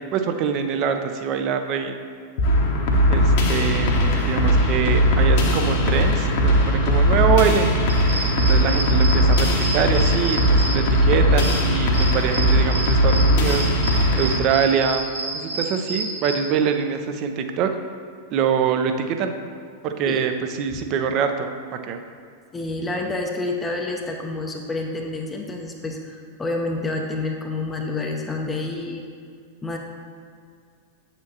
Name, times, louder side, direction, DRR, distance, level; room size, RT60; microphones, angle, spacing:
voice 1, 0.1-2.0 3.1-7.7 8.3-13.7 14.2-17.7 18.3-19.3 19.8-20.3 20.6-21.5 21.9-22.0, right 7 dB, 40° right, 7 dB, 0.6 m, -24 dB
sound 1, 2.4-14.4, equal, 50° left, 1.0 m, -19 dB
sound 2, 7.9-16.3, right 2 dB, 75° right, 1.9 m, -29 dB
voice 2, 22.5-29.0 29.6-29.8, left 2 dB, 15° left, 1 dB, 0.6 m, -28 dB
8.2 x 7.0 x 2.9 m, 2.3 s
figure-of-eight pair, 90°, 0 cm